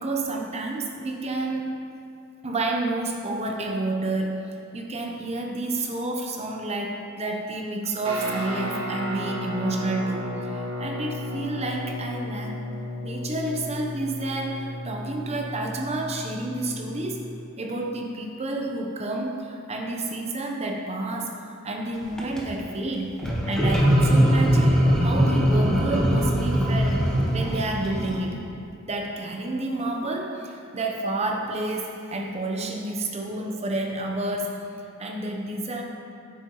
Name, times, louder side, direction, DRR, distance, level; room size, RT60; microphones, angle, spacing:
voice 1, 0.0-1.7 2.4-12.5 13.0-17.3 17.6-23.2 23.5-27.0 27.3-28.4 28.9-34.7 35.0-35.8, right 2 dB, 30° right, 1 dB, 0.7 m, -30 dB
Guitar, 8.0-17.4, equal, 70° right, 1.7 m, -34 dB
sound 1, 22.0-22.4 23.2-28.2, equal, 5° left, 0.9 m, -21 dB
9.3 x 7.3 x 3.0 m, 2.5 s
head